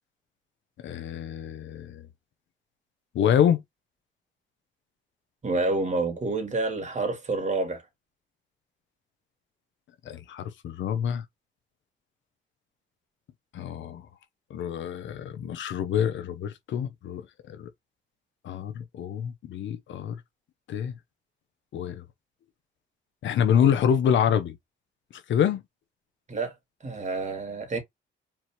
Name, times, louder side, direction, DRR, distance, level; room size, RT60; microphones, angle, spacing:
voice 1, 0.8-2.1 3.1-3.6 10.0-11.2 13.5-14.0 14.5-17.7 18.4-20.2 20.7-20.9 21.7-22.0 23.2-24.6 25.3-25.6, left 8 dB, 70° left, 1.0 m, -26 dB
voice 2, 5.4-7.8 26.3-26.5 26.8-27.8, right 3 dB, 35° right, 2.3 m, -28 dB
4.6 x 3.6 x 3.0 m
cardioid pair, 90°, 20 cm